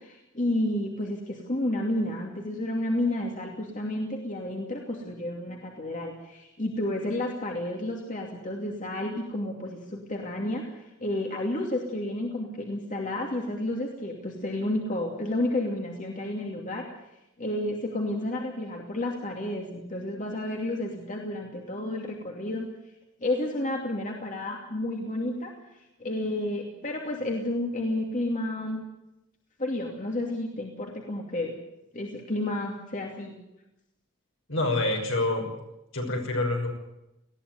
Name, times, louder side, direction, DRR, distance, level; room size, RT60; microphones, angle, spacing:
voice 1, 0.0-16.8 17.4-22.7 23.2-28.8 29.6-31.5 31.9-33.3, left 1 dB, 40° left, 0 dB, 2.7 m, -31 dB
voice 2, 34.5-35.5 35.9-36.7, left 2 dB, 65° left, 2 dB, 6.1 m, -26 dB
20.0 x 15.5 x 9.4 m, 0.90 s
head